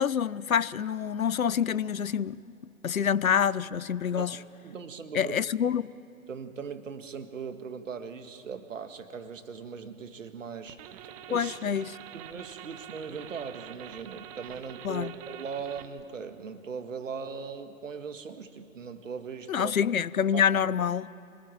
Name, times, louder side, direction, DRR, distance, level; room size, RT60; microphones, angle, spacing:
voice 1, 0.0-2.4 2.8-4.4 5.1-5.9 11.3-12.0 14.8-15.1 19.5-21.1, left 8 dB, 75° left, 0.7 m, -26 dB
voice 2, 4.6-5.4 6.3-10.8 11.3-11.6 12.1-19.7 20.3-20.4, right 6 dB, 65° right, 1.8 m, -39 dB
sound 1, 10.7-16.0, right 10 dB, 25° right, 0.9 m, -46 dB
26.5 x 20.0 x 9.1 m
figure-of-eight pair, 115°, 42 cm